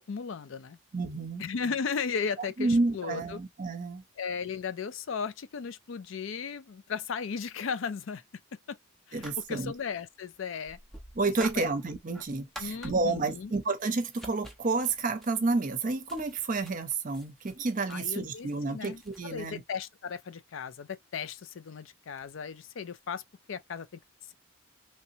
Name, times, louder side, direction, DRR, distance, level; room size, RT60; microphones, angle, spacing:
voice 1, 0.0-0.8 1.4-3.4 4.2-8.2 8.7-8.8 9.1-10.8 11.6-11.7 12.6-13.5 17.9-23.2 23.5-24.0, left 6 dB, 65° left, 0.4 m, -36 dB
voice 2, 0.9-1.4 2.6-4.0 9.1-9.7 11.2-19.6, right 3 dB, 40° right, 0.6 m, -30 dB
sound 1, 9.1-9.8 10.7-13.4 14.0-19.2, equal, ahead, 0.6 m, -48 dB
3.2 x 2.8 x 2.7 m
head